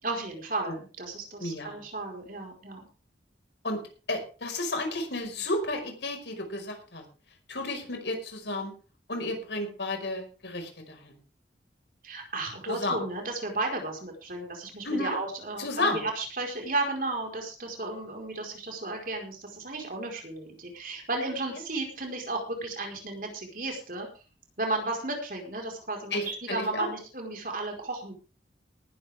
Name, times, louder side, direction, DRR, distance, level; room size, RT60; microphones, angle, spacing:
voice 1, 0.0-2.9 12.0-24.1 24.6-28.1, right 2 dB, 50° right, 2 dB, 4.7 m, -34 dB
voice 2, 1.4-1.8 3.6-7.0 7.5-8.7 9.1-11.2 12.7-13.0 14.8-15.2 15.6-16.0 26.1-26.9, left 2 dB, 80° left, 4 dB, 5.3 m, -32 dB
19.0 x 12.0 x 3.6 m, 0.36 s
head